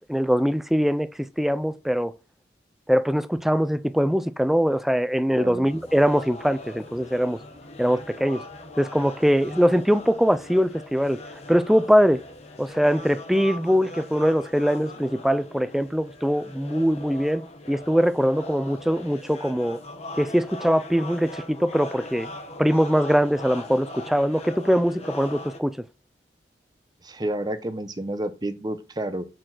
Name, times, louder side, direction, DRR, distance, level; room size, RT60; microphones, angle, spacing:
voice 1, 0.1-1.1 1.4-2.1 2.9-7.4 7.8-8.4 8.8-11.2 11.5-12.2 12.6-17.4 17.7-19.8 20.2-22.3 22.6-25.8, equal, ahead, 0.3 m, -22 dB
voice 2, 5.3-5.7 27.0-29.2, right 1 dB, 25° right, 0.7 m, -30 dB
sound 1, 5.6-25.6, left 2 dB, 40° left, 1.0 m, -41 dB
6.3 x 4.4 x 6.0 m
head